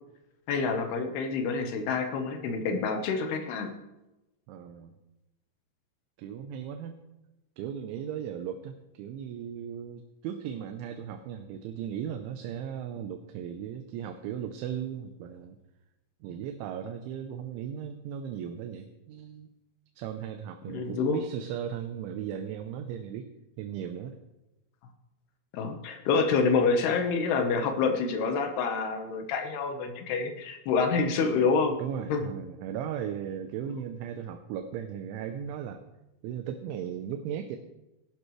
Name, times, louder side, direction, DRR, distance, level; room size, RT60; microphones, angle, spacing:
voice 1, 0.5-3.7 20.7-21.2 25.5-31.8 32.1-32.2, left 5 dB, 70° left, 5 dB, 2.8 m, -27 dB
voice 2, 4.5-4.9 6.2-7.0 7.6-15.6 16.2-19.5 20.0-23.3 23.6-24.2 31.8-35.8 36.2-37.6, right 9 dB, 80° right, 6 dB, 3.1 m, -37 dB
19.0 x 12.0 x 3.2 m, 0.98 s
omnidirectional pair, 5.7 m